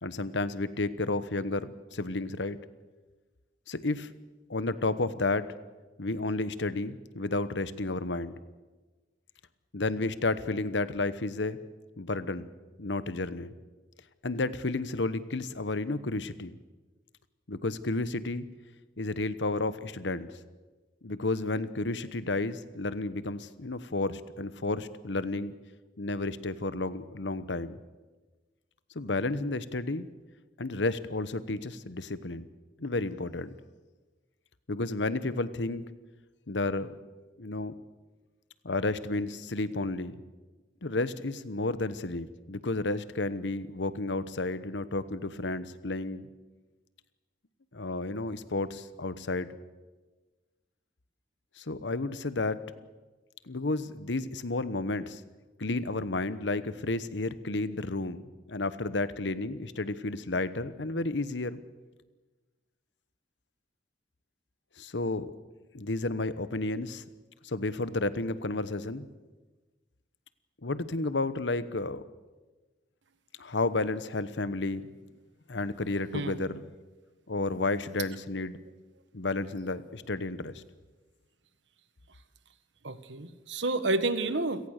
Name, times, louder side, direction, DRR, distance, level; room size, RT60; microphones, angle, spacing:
voice 1, 0.0-2.6 3.7-4.1 4.5-5.5 6.0-8.4 9.7-11.6 12.0-12.5 12.8-13.5 14.2-16.6 17.5-18.5 19.0-20.3 21.0-25.5 26.0-27.8 28.9-30.1 30.6-32.4 32.8-33.6 34.7-35.9 36.5-36.9 37.4-37.7 38.6-40.1 40.8-46.3 47.7-49.5 51.6-52.7 53.5-55.2 55.6-58.2 58.5-61.6 64.8-65.3 65.7-67.0 67.4-69.1 70.6-72.0 73.4-74.8 75.5-76.6 77.3-78.6 79.1-80.6, left 2 dB, 80° left, 14 dB, 1.1 m, -32 dB
voice 2, 82.8-84.7, right 2 dB, 90° right, 12 dB, 1.4 m, -30 dB
28.5 x 18.0 x 6.6 m, 1.3 s
head